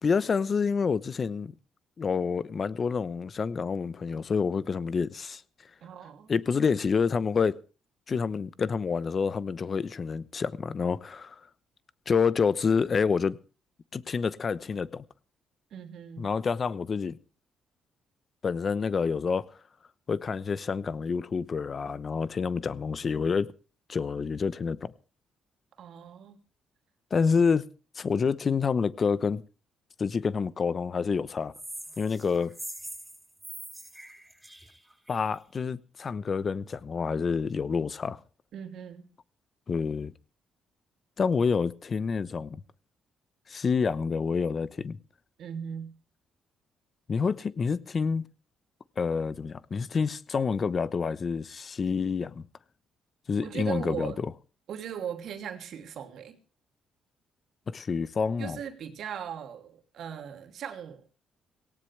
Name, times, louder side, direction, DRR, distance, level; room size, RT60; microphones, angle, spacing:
voice 1, 0.0-1.5 2.0-5.4 6.3-7.6 8.1-11.4 12.1-13.4 13.9-15.0 16.2-17.2 18.4-19.5 20.1-23.5 23.9-24.9 27.1-27.7 28.0-29.4 30.0-31.5 32.0-32.5 35.1-38.2 39.7-40.1 41.2-42.6 43.5-45.0 47.1-48.2 49.0-52.5 53.3-54.3 57.7-58.6, left 5 dB, 40° left, 0.9 m, -28 dB
voice 2, 5.8-6.4 15.7-16.3 25.8-26.4 38.5-39.1 45.4-45.9 53.4-54.2 54.7-56.4 58.4-61.1, right 8 dB, 70° right, 2.8 m, -38 dB
sound 1, 31.5-35.3, right 1 dB, 5° right, 5.3 m, -43 dB
18.0 x 17.5 x 3.4 m
cardioid pair, 90°, 0 cm